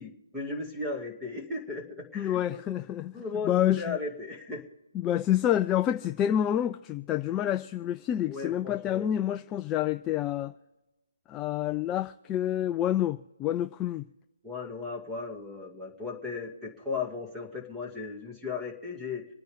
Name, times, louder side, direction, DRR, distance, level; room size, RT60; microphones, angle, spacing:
voice 1, 0.0-2.6 3.1-4.6 8.3-9.1 14.4-19.3, left 4 dB, 5° right, 2.3 m, -36 dB
voice 2, 2.1-3.1 3.4-4.0 4.9-10.5 11.3-14.0, left 11 dB, 15° left, 0.4 m, -28 dB
26.5 x 9.4 x 3.6 m
hypercardioid pair, 155°, 0 cm